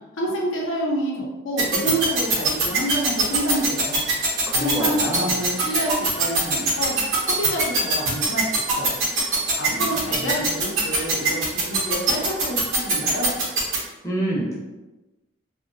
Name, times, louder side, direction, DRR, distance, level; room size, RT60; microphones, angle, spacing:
voice 1, 0.2-4.0 4.6-6.9 7.4-9.0 9.6-13.3, equal, 80° left, -3 dB, 0.6 m, -28 dB
sound 1, 1.6-13.8, right 4 dB, 85° right, 0.7 m, -21 dB
voice 2, 4.5-5.3 9.7-10.5 14.0-14.6, right 1 dB, 15° left, -5 dB, 0.5 m, -28 dB
2.6 x 2.1 x 2.6 m, 1.1 s
head